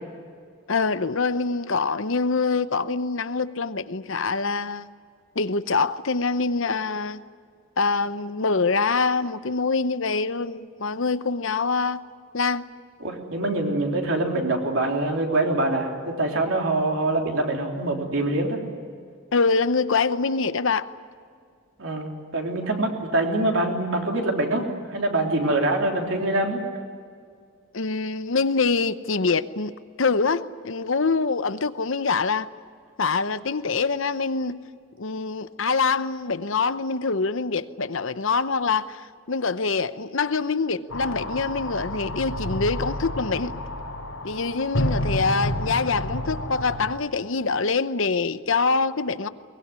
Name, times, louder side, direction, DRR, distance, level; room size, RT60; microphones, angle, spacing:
voice 1, 0.7-4.9 5.4-7.2 7.8-12.0 12.3-12.6 19.3-20.9 27.7-29.7 30.0-32.5 33.0-34.6 35.0-43.5 44.2-49.3, left 4 dB, 65° left, 0.8 m, -25 dB
voice 2, 13.0-18.6 21.8-26.6, right 2 dB, 65° right, 3.5 m, -24 dB
sound 1, 40.9-47.0, left 1 dB, 90° left, 3.5 m, -30 dB
23.0 x 20.5 x 9.6 m
head